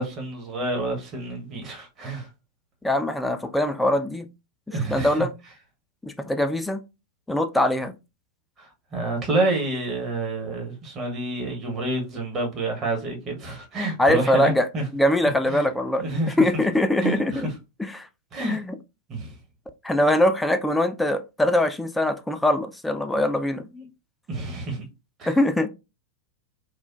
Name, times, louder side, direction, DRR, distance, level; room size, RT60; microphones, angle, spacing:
voice 1, 0.0-2.3 4.7-5.2 8.6-14.9 15.5-15.7 16.0-16.4 17.0-17.5 18.3-18.6 19.1-19.3 23.7-23.9 24.3-24.8 25.2-25.4, right 2 dB, 30° right, 1.0 m, -28 dB
voice 2, 2.8-4.3 4.9-5.3 6.0-6.8 7.3-7.9 14.0-14.7 14.9-16.1 16.4-17.5 17.9-18.1 18.5-18.7 19.8-23.7 25.3-25.7, left 1 dB, 5° left, 0.3 m, -22 dB
3.3 x 2.1 x 2.4 m
figure-of-eight pair, 90°, 0 cm